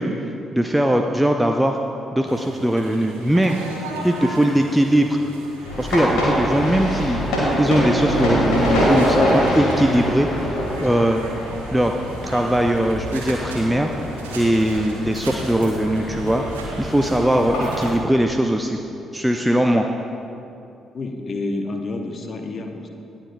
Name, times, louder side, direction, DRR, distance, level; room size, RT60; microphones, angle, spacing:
voice 1, 0.0-1.8 2.1-3.6 4.0-5.2 5.8-7.3 7.6-11.2 11.7-11.9 12.2-13.9 14.3-16.4 16.8-18.8 19.1-19.9, right 1 dB, 5° right, 3 dB, 0.5 m, -20 dB
sound 1, 2.3-17.9, right 2 dB, 75° right, 1.0 m, -38 dB
voice 2, 3.8-4.3 20.9-22.9, left 2 dB, 40° left, 4 dB, 0.9 m, -29 dB
sound 2, 5.6-17.9, equal, 65° left, 2.3 m, -24 dB
18.5 x 7.2 x 2.6 m, 2.7 s
figure-of-eight pair, 40°, 0 cm